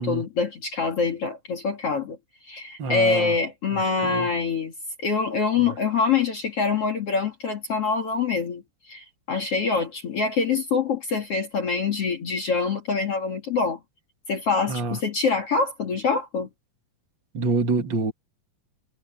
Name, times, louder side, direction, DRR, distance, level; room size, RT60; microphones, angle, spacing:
voice 1, 0.0-2.2 2.5-4.7 5.0-8.6 8.9-13.8 14.3-16.5, left 5 dB, 45° left, 2.4 m, -25 dB
voice 2, 2.8-3.4 3.7-4.3 5.6-5.7 14.7-15.0 17.3-18.1, right 3 dB, 35° right, 2.1 m, -27 dB
omnidirectional pair, 4.9 m